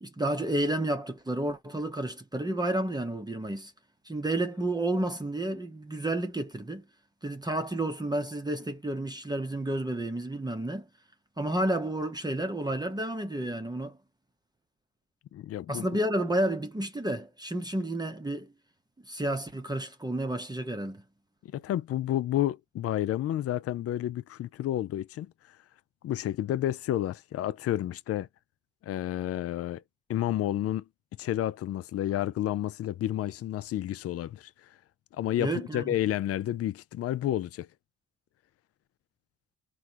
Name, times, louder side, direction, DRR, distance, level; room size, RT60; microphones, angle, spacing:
voice 1, 0.0-3.7 4.1-6.8 7.2-10.9 11.4-14.0 15.7-18.5 19.1-21.0 35.4-35.9, right 1 dB, 15° right, 0.7 m, -31 dB
voice 2, 15.3-16.0 21.4-25.3 26.0-28.3 28.8-29.8 30.1-30.8 31.2-34.5 35.1-37.7, left 12 dB, 50° left, 0.5 m, -30 dB
3.8 x 2.2 x 4.5 m
cardioid pair, 90°, 30 cm